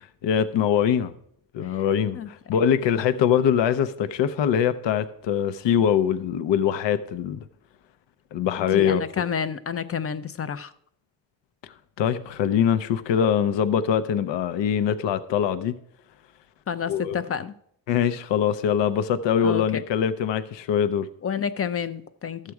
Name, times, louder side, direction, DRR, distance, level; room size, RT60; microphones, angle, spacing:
voice 1, 0.2-1.1 1.5-7.4 8.3-9.0 11.6-15.8 16.9-17.2 17.9-21.1, left 8 dB, 70° left, 0.7 m, -23 dB
voice 2, 8.6-10.7 16.7-17.5 19.4-19.8 21.2-22.4, left 7 dB, 30° left, 0.5 m, -29 dB
13.0 x 7.5 x 4.7 m
cardioid pair, 135°, 45 cm